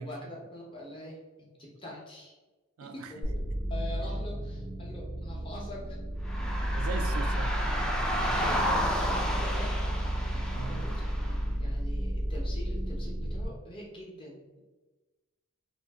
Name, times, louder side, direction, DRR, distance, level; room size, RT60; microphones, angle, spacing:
voice 1, 0.0-2.3 2.8-3.3 3.7-6.0 8.2-9.7 10.6-14.6, left 1 dB, 25° left, -3 dB, 0.7 m, -44 dB
voice 2, 2.8-3.3 6.7-7.6 10.5-10.8, right 5 dB, 90° right, 7 dB, 0.3 m, -40 dB
sound 1, 3.2-13.5, equal, 90° left, 1.0 m, -32 dB
sound 2, 6.2-11.4, equal, 5° left, 0.3 m, -32 dB
2.7 x 2.6 x 3.4 m, 1.2 s
head